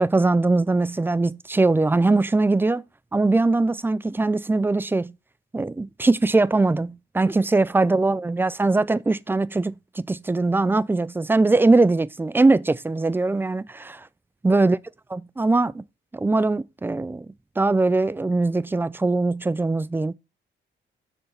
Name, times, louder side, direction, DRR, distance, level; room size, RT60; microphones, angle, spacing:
voice 1, 0.0-2.8 3.1-5.1 5.5-14.1 14.4-14.8 15.1-15.8 16.1-17.3 17.6-20.1, right 3 dB, 10° right, 0.4 m, -21 dB
6.3 x 4.7 x 4.2 m
cardioid pair, 90°, 20 cm